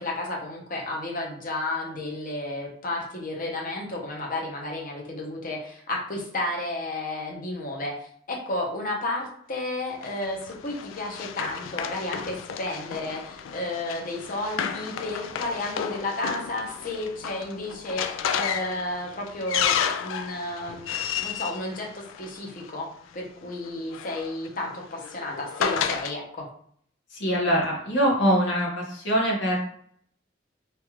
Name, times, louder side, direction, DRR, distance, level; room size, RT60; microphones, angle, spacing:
voice 1, 0.0-18.1 18.3-20.9 21.2-26.5, left 2 dB, 45° left, -1 dB, 0.8 m, -32 dB
Run, 10.0-22.7 23.7-26.1, left 8 dB, 85° left, 0.3 m, -32 dB
voice 2, 27.1-29.7, equal, 65° left, -3 dB, 1.1 m, -23 dB
3.1 x 2.4 x 2.9 m, 0.62 s
head